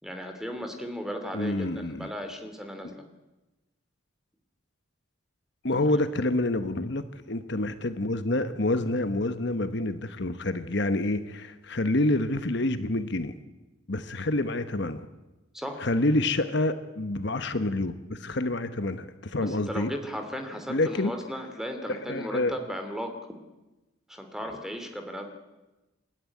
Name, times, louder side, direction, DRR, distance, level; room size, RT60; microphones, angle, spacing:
voice 1, 0.0-3.0 15.5-15.8 19.4-23.4 24.1-25.2, equal, ahead, 5 dB, 2.7 m, -36 dB
voice 2, 1.3-2.1 2.8-2.9 5.6-13.3 13.9-15.1 15.8-19.9 20.7-21.1 21.9-22.5, left 2 dB, 55° left, 10 dB, 1.1 m, -27 dB
28.5 x 13.0 x 9.7 m, 1.1 s
head